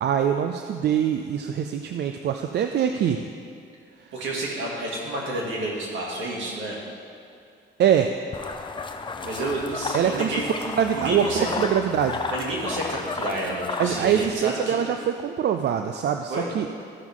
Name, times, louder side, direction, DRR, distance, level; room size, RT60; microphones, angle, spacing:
voice 1, 0.0-3.2 7.8-8.2 9.9-10.4 10.7-12.2 13.8-16.7, right 9 dB, 60° right, 6 dB, 0.5 m, -23 dB
voice 2, 4.1-6.8 9.2-10.5 10.9-11.5 12.3-14.8 16.3-16.5, right 1 dB, 75° right, -3 dB, 2.4 m, -30 dB
sound 1, 8.3-14.3, left 4 dB, 25° left, 0.6 m, -33 dB
14.0 x 6.0 x 3.7 m, 2.4 s
cardioid pair, 90°, 20 cm